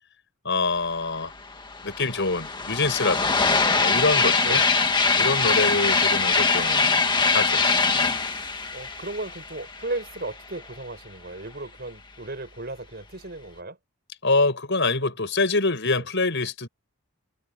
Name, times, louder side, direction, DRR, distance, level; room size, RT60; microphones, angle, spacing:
voice 1, 0.4-1.3 1.8-3.5 3.8-4.6 5.2-7.0 7.3-7.6 7.9-8.2 14.2-16.7, left 3 dB, 55° left, 6.2 m, -25 dB
sound 1, 1.2-1.3 1.5-10.2, left 4 dB, 20° left, 1.7 m, -22 dB
voice 2, 4.4-4.8 8.7-13.8 15.0-15.1 15.9-16.1, right 2 dB, 45° right, 4.9 m, -35 dB
head